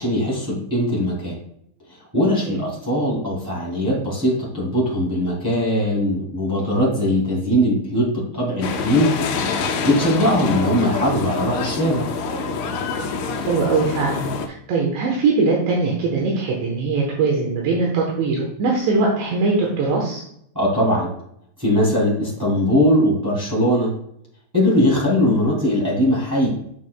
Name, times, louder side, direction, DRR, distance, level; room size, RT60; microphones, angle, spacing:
voice 1, 0.0-1.4 2.1-9.1 9.5-12.0 20.5-21.1 21.6-23.9 24.5-26.5, equal, 10° right, -5 dB, 0.8 m, -20 dB
sound 1, 8.6-14.5, left 4 dB, 80° left, 3.1 m, -26 dB
voice 2, 13.5-14.2 14.7-20.2, right 3 dB, 75° right, -2 dB, 3.2 m, -21 dB
8.4 x 7.0 x 2.2 m, 0.72 s
omnidirectional pair, 5.4 m